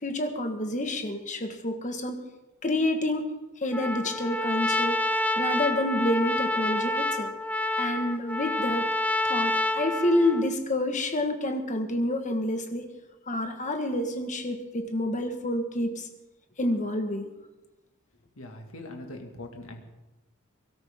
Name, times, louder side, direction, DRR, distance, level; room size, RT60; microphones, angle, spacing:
voice 1, 0.0-2.2 2.6-3.3 3.6-5.0 5.3-7.3 7.8-8.9 9.2-12.9 13.3-16.1 16.6-17.3, left 1 dB, 35° left, 5 dB, 1.6 m, -28 dB
Trumpet, 3.7-10.5, left 1 dB, 5° left, 0.6 m, -28 dB
voice 2, 18.4-19.8, left 1 dB, 75° left, 3 dB, 2.1 m, -41 dB
23.5 x 13.0 x 3.7 m, 1.0 s
head